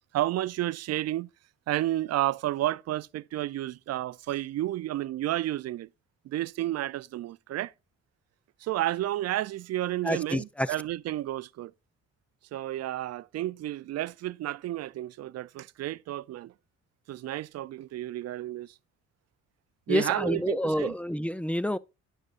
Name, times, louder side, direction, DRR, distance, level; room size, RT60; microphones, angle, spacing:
voice 1, 0.1-1.3 1.7-5.9 6.2-7.7 8.6-11.7 12.5-16.5 17.1-18.7 19.9-20.9, right 14 dB, 55° right, 0.4 m, -31 dB
voice 2, 10.0-10.7 19.9-21.8, equal, 5° left, 0.4 m, -28 dB
9.7 x 6.6 x 2.4 m
cardioid pair, 90°, 30 cm